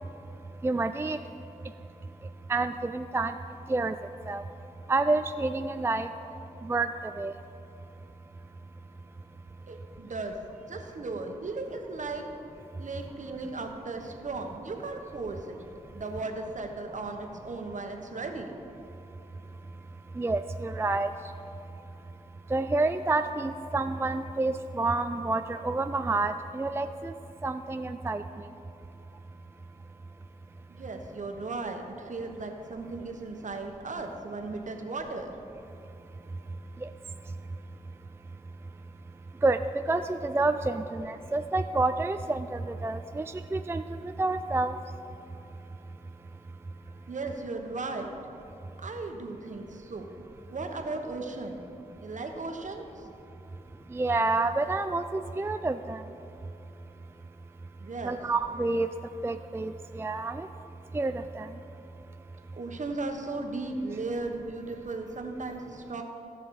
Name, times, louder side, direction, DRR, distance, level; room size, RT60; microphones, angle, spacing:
voice 1, 0.6-1.2 2.5-3.3 3.7-3.9 4.3-4.4 4.9-6.1 6.6-6.9 7.2-7.3 20.2-21.1 22.5-27.1 27.4-28.2 36.8-36.9 39.4-39.6 39.9-43.2 43.5-44.7 53.9-56.0 58.0-58.9 59.2-60.5 60.9-61.5, right 3 dB, 15° right, 9 dB, 0.3 m, -28 dB
voice 2, 9.7-12.3 12.8-15.6 15.9-18.5 30.7-35.4 47.1-48.1 48.8-50.1 50.5-51.6 52.0-53.1 57.8-58.2 62.6-66.0, right 3 dB, 55° right, 4 dB, 1.1 m, -36 dB
15.5 x 5.7 x 4.7 m, 3.0 s
cardioid pair, 60°, 15 cm